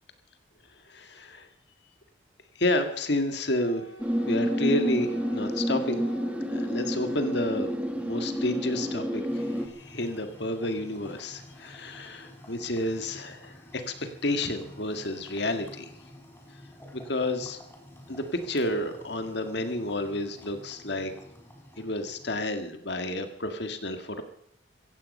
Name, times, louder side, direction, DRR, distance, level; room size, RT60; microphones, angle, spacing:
voice 1, 0.9-1.5 2.6-3.9 4.3-6.0 6.5-7.8 8.0-15.9 16.9-17.6 18.1-21.1 21.8-24.2, left 1 dB, 60° left, 7 dB, 1.9 m, -30 dB
Wind instrument woodwind instrument, 3.5-7.4, equal, 75° left, 3.2 m, -47 dB
sound 1, 4.0-9.7, equal, 5° right, 1.6 m, -29 dB
sound 2, 9.3-22.4, left 1 dB, 10° left, 3.7 m, -50 dB
16.0 x 16.0 x 5.5 m, 0.71 s
head